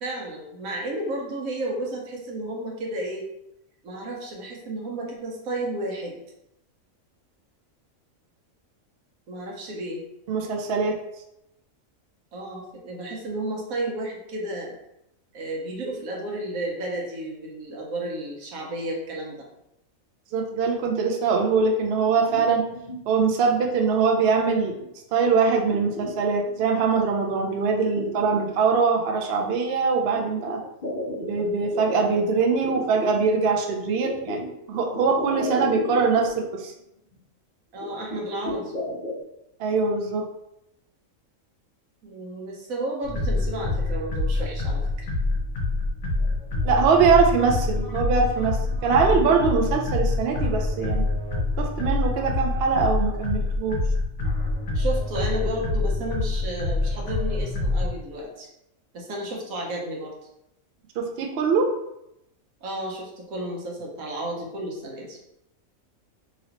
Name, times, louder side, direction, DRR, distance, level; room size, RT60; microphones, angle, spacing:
voice 1, 0.0-3.2 3.8-6.2 9.3-10.0 12.3-14.7 15.3-19.5 37.7-38.8 42.0-45.1 54.7-58.5 58.9-60.1 62.6-65.2, right 1 dB, 90° right, -1 dB, 1.2 m, -32 dB
voice 2, 10.3-11.0 20.3-22.6 23.1-24.7 25.1-30.6 31.2-34.4 34.7-36.7 39.6-40.3 46.6-51.1 51.6-53.8 61.0-61.7, right 5 dB, 65° right, 2 dB, 0.6 m, -22 dB
sound 1, 22.1-23.2 23.6-24.0 24.4-24.9 25.2-26.8 27.3-27.4 27.7-29.0 30.1-33.2 34.0-36.4 36.8-36.9 37.1-37.2 37.8-39.2, left 1 dB, 40° left, 0.8 m, -34 dB
sound 2, 43.0-57.9, left 2 dB, 65° left, 1.0 m, -26 dB
3.0 x 2.9 x 2.8 m, 0.84 s
omnidirectional pair, 1.4 m